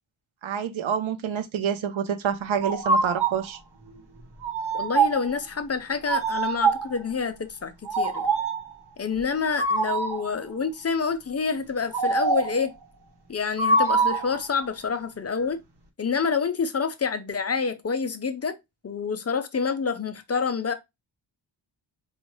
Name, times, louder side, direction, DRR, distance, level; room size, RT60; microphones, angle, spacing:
voice 1, 0.4-3.6, right 8 dB, 75° right, 0.7 m, -27 dB
sound 1, 2.6-3.4 4.4-5.3 6.1-7.0 7.9-8.7 9.6-10.3 11.9-12.6 13.6-14.4, right 3 dB, 55° right, 1.0 m, -24 dB
voice 2, 4.7-8.3 9.0-12.7 13.3-15.6 16.0-18.6 18.8-20.7, left 5 dB, 35° left, 0.5 m, -27 dB
4.2 x 2.3 x 3.0 m
wide cardioid pair, 125°, 48 cm